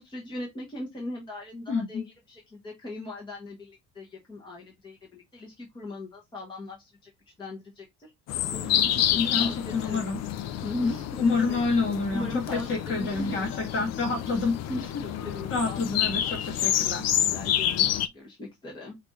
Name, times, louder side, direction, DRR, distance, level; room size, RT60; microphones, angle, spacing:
voice 1, 0.0-7.1 7.4-8.1 8.5-10.1 10.6-11.6 12.1-13.7 14.7-16.4 17.2-19.0, left 1 dB, 15° left, 1.2 m, -39 dB
voice 2, 1.7-2.1 9.2-10.2 10.8-10.9 11.2-13.5 13.7-14.6 15.5-17.0, left 4 dB, 40° left, 2.1 m, -28 dB
sound 1, 8.3-18.1, left 11 dB, 60° left, 0.5 m, -28 dB
6.1 x 2.6 x 3.1 m
cardioid pair, 170°, 30 cm